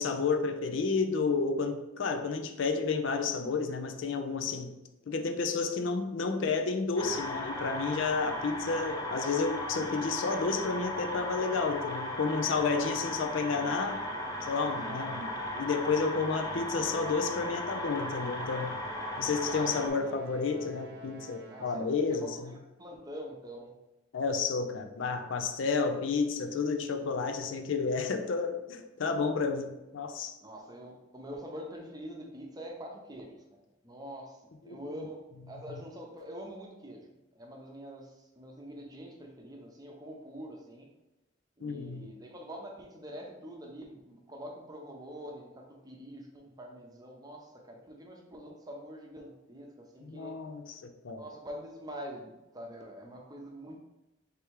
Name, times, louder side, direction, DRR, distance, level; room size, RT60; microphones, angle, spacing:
voice 1, 0.0-4.8 5.1-14.1 14.4-15.3 15.5-18.8 19.2-22.5 24.1-30.3 34.7-35.1 35.7-35.8 41.6-42.1 50.0-51.2, left 4 dB, 70° left, 7 dB, 0.5 m, -31 dB
sound 1, 7.0-19.9, left 1 dB, 20° left, 0.5 m, -37 dB
Musical instrument, 13.5-22.0, right 3 dB, 55° right, 0.6 m, -51 dB
voice 2, 14.7-15.4 19.4-20.2 21.5-23.7 30.4-35.2 35.5-40.9 41.6-50.4 51.1-53.8, equal, 20° right, 0 dB, 0.7 m, -45 dB
3.4 x 3.3 x 4.6 m, 0.97 s
head